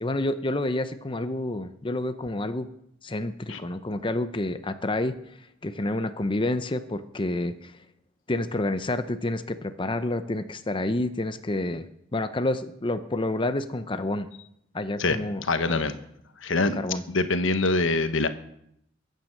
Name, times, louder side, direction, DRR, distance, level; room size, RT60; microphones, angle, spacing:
voice 1, 0.0-2.7 3.0-5.1 5.6-7.7 8.3-11.9 12.1-14.3 14.7-15.4 15.7-15.8 16.8-17.0, left 2 dB, 25° left, 10 dB, 0.7 m, -29 dB
voice 2, 15.0-15.9 16.4-16.8 17.1-18.3, left 3 dB, 80° left, 10 dB, 1.3 m, -24 dB
22.5 x 9.1 x 6.6 m, 0.75 s
head